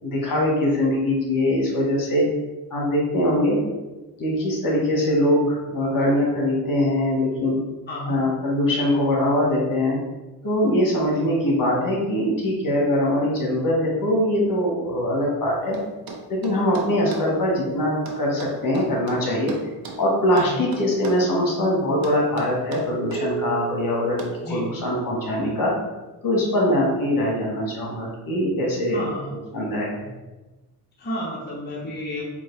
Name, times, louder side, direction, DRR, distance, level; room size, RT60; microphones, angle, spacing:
voice 1, 0.0-2.3 2.7-3.6 4.2-7.6 8.1-10.0 10.4-15.8 16.3-19.5 20.0-24.2 24.5-25.7 26.2-29.0 29.5-30.1, left 1 dB, 55° left, -3 dB, 1.5 m, -22 dB
sound 1, 15.7-17.3 18.1-20.0 20.4-21.3 22.0-23.3 24.2-24.4, right 3 dB, 65° right, 0.8 m, -37 dB
sound 2, 23.1-25.5, right 5 dB, 25° right, 0.5 m, -35 dB
voice 2, 28.9-29.3 31.0-32.2, equal, 25° left, -5 dB, 0.8 m, -31 dB
4.6 x 2.5 x 3.9 m, 1.1 s
cardioid pair, 115°, 40 cm